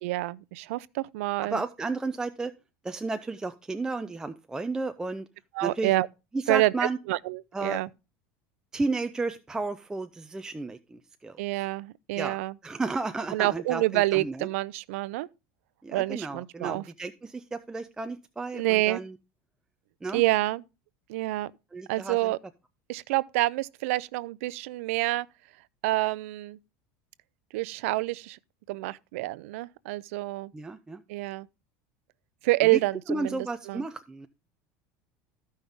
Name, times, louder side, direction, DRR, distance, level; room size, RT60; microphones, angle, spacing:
voice 1, 0.0-1.6 5.5-6.1 6.5-6.7 7.1-7.9 11.4-12.6 13.3-15.3 15.9-16.8 18.5-19.0 20.1-20.6 21.1-21.5 21.9-22.4 22.9-25.3 25.8-26.6 27.5-28.4 28.7-30.5 31.1-31.5 32.4-33.9, right 19 dB, 80° right, 0.4 m, -27 dB
voice 2, 1.4-2.5 2.8-5.3 5.6-5.9 6.3-7.0 7.5-7.8 8.7-11.4 12.2-14.5 15.8-19.1 20.0-20.2 21.7-22.3 30.5-31.0 32.7-32.8 33.1-34.3, right 3 dB, 10° right, 0.4 m, -33 dB
13.5 x 5.4 x 3.6 m
supercardioid pair, 135°, 7 cm